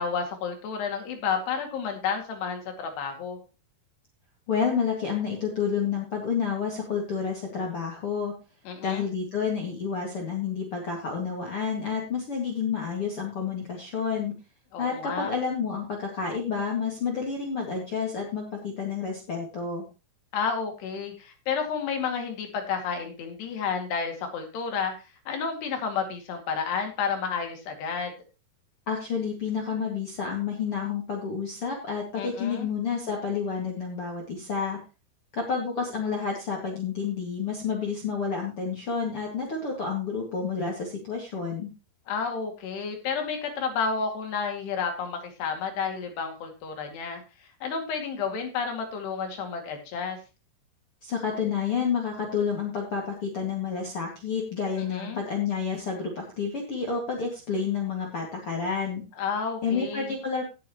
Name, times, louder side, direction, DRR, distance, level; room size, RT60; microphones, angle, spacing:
voice 1, 0.0-3.4 8.7-9.1 14.7-15.3 20.3-24.9 25.3-28.1 32.2-32.7 42.1-47.2 47.6-50.2 54.8-55.2 59.2-60.2, left 6 dB, 80° left, 4 dB, 4.5 m, -31 dB
voice 2, 4.5-8.3 8.8-14.3 14.8-19.8 28.9-34.8 35.3-41.7 51.0-59.0 59.6-60.5, left 6 dB, 40° left, 0 dB, 2.4 m, -29 dB
17.0 x 7.6 x 3.0 m, 0.30 s
omnidirectional pair, 4.7 m